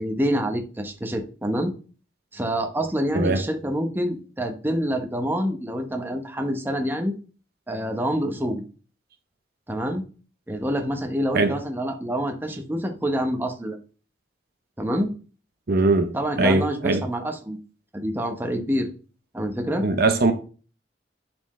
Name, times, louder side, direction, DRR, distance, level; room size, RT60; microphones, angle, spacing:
voice 1, 0.0-1.7 2.3-7.1 7.7-8.6 9.7-10.0 10.5-13.8 14.8-15.1 16.1-17.6 17.9-18.9 19.3-19.9, equal, 10° right, 0.9 m, -26 dB
voice 2, 15.7-16.1 16.4-17.0 19.8-20.3, right 3 dB, 55° right, 0.7 m, -20 dB
11.0 x 4.4 x 3.1 m
head